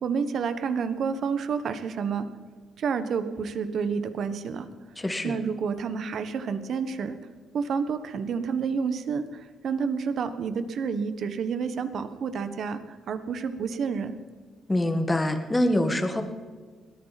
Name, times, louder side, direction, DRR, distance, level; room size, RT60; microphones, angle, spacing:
voice 1, 0.0-2.3 2.8-4.7 5.2-7.2 7.5-12.8 13.1-14.2, right 6 dB, 60° right, 10 dB, 1.4 m, -29 dB
voice 2, 5.0-5.3 14.7-16.2, left 1 dB, 15° left, 5 dB, 1.7 m, -25 dB
21.5 x 14.5 x 4.2 m, 1.5 s
cardioid pair, 90°, 0 cm